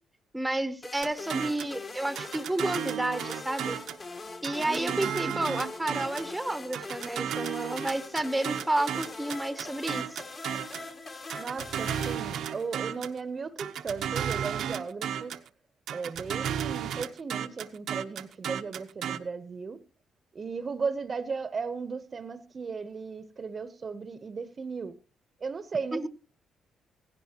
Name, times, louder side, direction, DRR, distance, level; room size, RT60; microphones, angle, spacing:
voice 1, 0.3-3.8 4.4-10.2 25.9-26.1, right 1 dB, 10° right, 0.9 m, -31 dB
sound 1, 0.8-13.0, left 3 dB, 40° left, 1.9 m, -42 dB
sound 2, 1.0-1.8 2.2-4.0 4.4-6.3 6.7-10.9 11.3-13.2 13.6-15.5 15.9-19.2, right 9 dB, 75° right, 0.8 m, -34 dB
voice 2, 4.6-5.5 11.4-15.3 15.9-19.8 20.3-25.0 25.4-26.1, right 5 dB, 40° right, 0.9 m, -36 dB
16.0 x 16.0 x 2.9 m
cardioid pair, 90°, 0 cm